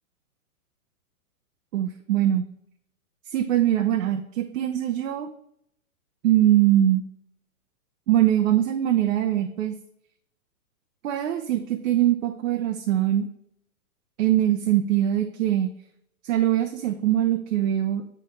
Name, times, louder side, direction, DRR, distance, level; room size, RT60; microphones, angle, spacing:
voice 1, 1.7-2.4 3.2-5.3 6.2-7.0 8.1-9.8 11.0-13.3 14.2-15.7 16.2-18.0, right 12 dB, 60° right, 6 dB, 0.7 m, -22 dB
7.8 x 4.3 x 3.1 m, 0.74 s
hypercardioid pair, 135°, 45 cm